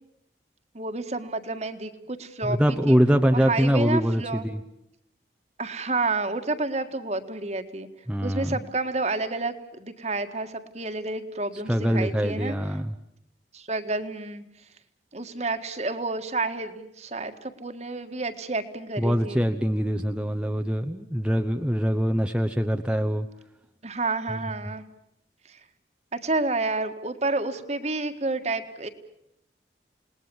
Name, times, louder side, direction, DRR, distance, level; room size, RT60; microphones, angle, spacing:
voice 1, 0.7-3.0 3.3-4.5 5.6-7.9 8.2-12.6 13.5-14.4 15.1-19.5 23.8-24.8 25.5-25.6 26.1-28.9, right 3 dB, 40° right, 8 dB, 1.7 m, -30 dB
voice 2, 2.4-4.6 8.1-8.6 11.7-12.9 19.0-23.3, equal, 5° right, 5 dB, 0.9 m, -23 dB
29.0 x 20.0 x 7.1 m, 0.82 s
head